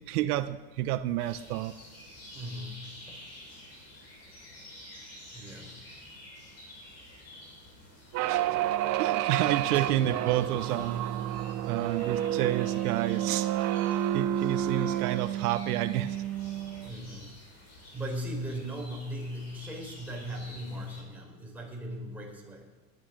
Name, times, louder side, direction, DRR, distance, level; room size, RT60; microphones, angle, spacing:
voice 1, 0.0-1.7 8.3-8.4 9.0-11.0 11.7-13.5 13.8-16.2, right 13 dB, 80° right, 10 dB, 1.0 m, -30 dB
sound 1, 1.2-21.0, left 1 dB, 35° left, 6.9 m, -50 dB
voice 2, 2.3-3.2 5.3-5.8 9.7-9.8 16.8-17.4 17.9-22.7, equal, 5° right, -3 dB, 5.0 m, -38 dB
sound 2, 8.1-16.9, right 12 dB, 40° right, 0.9 m, -30 dB
20.0 x 11.0 x 6.4 m, 1.2 s
supercardioid pair, 150°, 44 cm